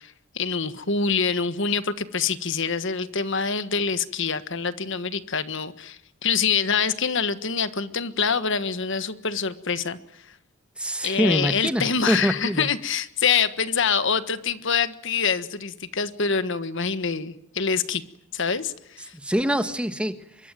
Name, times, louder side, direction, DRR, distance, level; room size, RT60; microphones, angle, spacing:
voice 1, 0.0-10.2 11.0-18.0 18.3-19.1, left 6 dB, 60° left, 1.5 m, -25 dB
voice 2, 10.8-12.7 19.1-20.5, equal, 5° right, 1.3 m, -25 dB
25.5 x 23.0 x 9.2 m
head